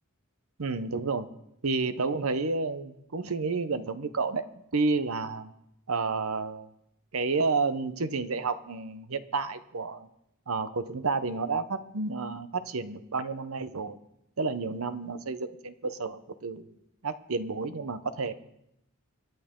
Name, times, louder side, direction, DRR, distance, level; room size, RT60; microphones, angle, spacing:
voice 1, 0.6-1.3 1.6-5.5 5.9-6.7 7.1-10.1 10.5-14.0 14.4-16.7 17.0-18.3, right 4 dB, 75° right, 11 dB, 0.9 m, -30 dB
25.0 x 10.5 x 3.8 m, 0.82 s
head